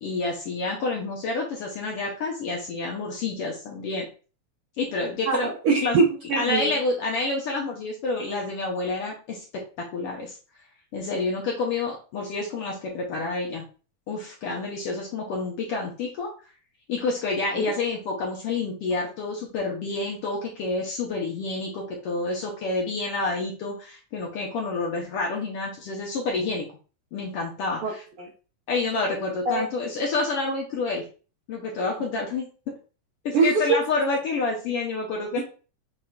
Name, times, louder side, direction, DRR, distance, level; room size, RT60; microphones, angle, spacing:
voice 1, 0.0-4.1 4.8-5.5 5.8-6.0 6.4-10.4 10.9-13.6 14.1-16.3 16.9-26.7 27.1-28.0 28.7-31.0 31.5-32.5 33.2-35.4, left 3 dB, 70° left, -1 dB, 1.5 m, -28 dB
voice 2, 5.3-6.7 17.5-17.6 27.8-27.9 28.2-28.3 29.5-29.6 33.3-33.8, right 4 dB, 65° right, -2 dB, 1.4 m, -23 dB
6.3 x 3.6 x 2.3 m, 0.36 s
omnidirectional pair, 3.4 m